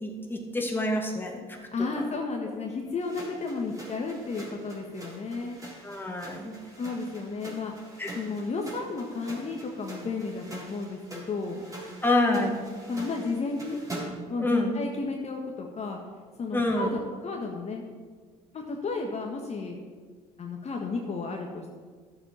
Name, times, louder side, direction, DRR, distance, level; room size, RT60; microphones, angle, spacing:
voice 1, 0.0-1.4 5.8-6.6 8.0-8.1 12.0-12.6 14.4-14.7 16.5-16.9, left 2 dB, 10° left, 1 dB, 2.1 m, -27 dB
voice 2, 1.5-5.6 6.7-7.7 8.1-11.6 12.9-13.8 14.3-16.0 16.4-17.8 18.5-19.8 20.4-21.7, left 4 dB, 40° left, 1 dB, 1.5 m, -33 dB
sound 1, 3.0-14.3, right 2 dB, 20° right, 3.8 m, -44 dB
11.5 x 7.3 x 5.7 m, 1.5 s
supercardioid pair, 75°, 17 cm